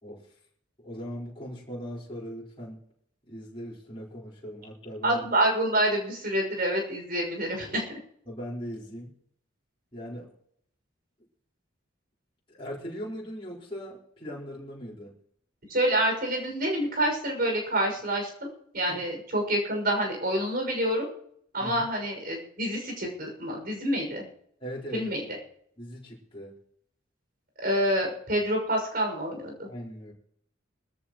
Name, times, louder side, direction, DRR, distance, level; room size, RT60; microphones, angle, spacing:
voice 1, 0.8-2.8 3.3-5.2 8.3-9.1 9.9-10.3 12.5-15.1 18.9-19.0 21.6-21.9 24.6-25.1 25.8-26.5 29.7-30.1, equal, 25° left, -6 dB, 4.5 m, -39 dB
voice 2, 5.0-7.8 15.7-18.3 18.7-21.0 21.5-24.2 24.9-25.4 27.6-29.7, right 1 dB, 50° right, 1 dB, 6.2 m, -27 dB
21.5 x 14.0 x 3.1 m, 0.67 s
head